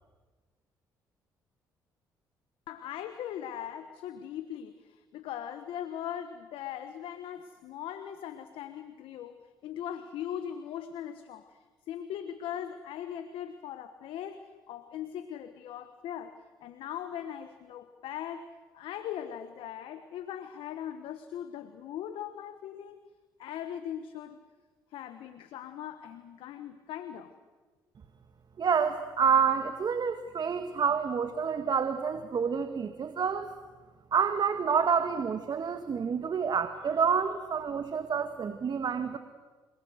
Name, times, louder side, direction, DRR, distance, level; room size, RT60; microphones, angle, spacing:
voice 1, 2.7-9.4 9.6-18.5 18.7-23.0 23.4-24.4 24.9-27.3, left 10 dB, 75° left, 10 dB, 1.2 m, -40 dB
voice 2, 28.6-33.5 34.1-39.2, right 6 dB, 50° right, 9 dB, 1.7 m, -28 dB
28.5 x 20.0 x 8.0 m, 1.3 s
hypercardioid pair, 55°, 9 cm